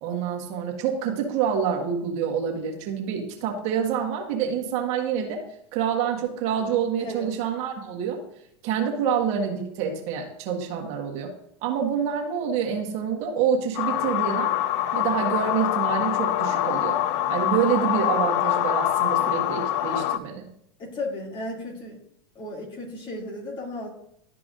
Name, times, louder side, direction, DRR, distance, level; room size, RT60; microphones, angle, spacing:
voice 1, 0.0-5.4 5.7-8.2 8.6-11.3 11.6-14.5 14.9-17.0 17.3-20.5, right 7 dB, 50° right, 0 dB, 1.6 m, -27 dB
voice 2, 7.0-7.3 17.7-17.8 20.8-22.0 22.3-23.9, left 1 dB, 35° left, -2 dB, 2.6 m, -34 dB
sound 1, 13.7-20.2, left 12 dB, 50° left, 0.4 m, -25 dB
12.0 x 4.7 x 2.6 m, 0.73 s
hypercardioid pair, 110°, 15 cm